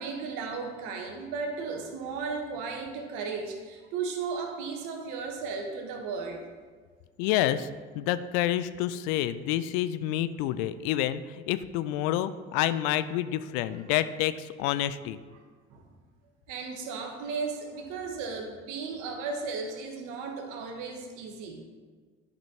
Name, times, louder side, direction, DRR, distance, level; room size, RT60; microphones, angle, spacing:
voice 1, 0.0-6.4 15.3-15.4 15.7-15.8 16.5-21.6, right 4 dB, 65° right, 3 dB, 1.2 m, -35 dB
voice 2, 7.2-7.7 7.9-15.2, left 12 dB, 60° left, 13 dB, 0.4 m, -28 dB
12.0 x 5.1 x 2.9 m, 1.5 s
figure-of-eight pair, 55°, 34 cm